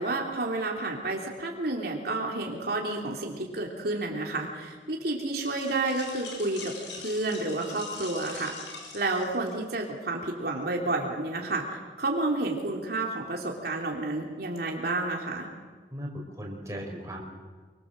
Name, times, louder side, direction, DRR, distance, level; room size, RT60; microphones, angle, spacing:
voice 1, 0.0-6.7 7.0-8.5 8.9-15.5, right 2 dB, 60° right, -1 dB, 3.2 m, -30 dB
sound 1, 5.4-9.8, left 4 dB, 85° left, 7.0 m, -43 dB
voice 2, 15.9-17.2, equal, 15° right, -1 dB, 5.3 m, -37 dB
26.0 x 25.0 x 7.7 m, 1.4 s
head